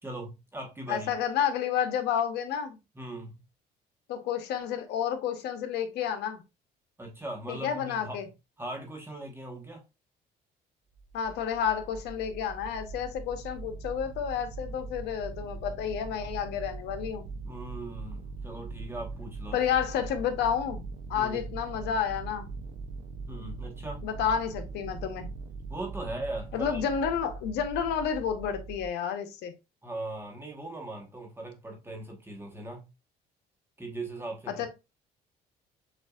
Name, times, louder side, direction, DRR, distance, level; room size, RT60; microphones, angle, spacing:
voice 1, 0.0-1.2 2.9-3.3 7.0-8.2 8.6-9.8 17.4-19.6 21.1-21.4 23.3-24.0 25.7-26.8 29.8-32.9 33.8-34.7, right 2 dB, 15° right, 1.1 m, -39 dB
voice 2, 0.9-2.8 4.1-6.4 7.5-8.3 11.1-17.2 19.5-20.8 21.1-22.5 24.0-25.3 26.5-29.5 34.5-34.7, left 8 dB, 80° left, 0.9 m, -30 dB
sound 1, 11.0-28.9, right 4 dB, 65° right, 0.6 m, -41 dB
6.8 x 2.5 x 2.3 m
cardioid pair, 110°, 17 cm